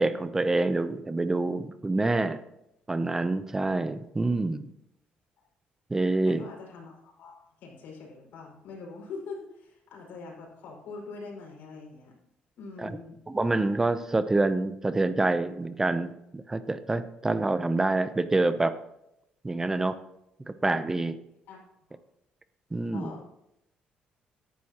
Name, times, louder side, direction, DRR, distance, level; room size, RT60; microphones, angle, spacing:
voice 1, 0.0-2.4 2.9-4.7 5.9-6.5 12.8-13.0 13.3-18.7 19.4-20.0 20.5-21.2 22.7-23.1, right 2 dB, 15° right, 12 dB, 0.7 m, -27 dB
voice 2, 6.3-7.3 7.6-12.1 12.6-13.1 21.5-21.6 22.9-23.2, left 4 dB, 80° left, -1 dB, 5.2 m, -43 dB
14.5 x 11.0 x 3.0 m, 0.82 s
cardioid pair, 130°, 3 cm